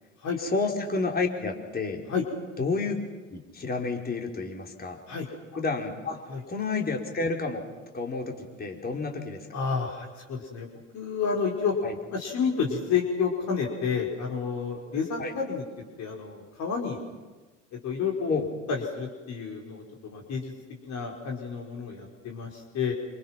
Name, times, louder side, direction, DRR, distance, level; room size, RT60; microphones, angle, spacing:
voice 1, 0.4-2.0 2.6-3.0 3.3-5.0 5.6-7.6 7.9-9.5 11.8-11.9 15.2-15.3 18.3-18.5, left 4 dB, 25° left, 1 dB, 4.8 m, -30 dB
voice 2, 9.5-10.7 10.9-11.7 12.1-15.6 16.0-17.0 17.8-18.3 18.7-20.5 20.8-22.9, left 6 dB, 45° left, 0 dB, 5.0 m, -30 dB
28.0 x 28.0 x 6.1 m, 1.3 s
figure-of-eight pair, 70°, 38 cm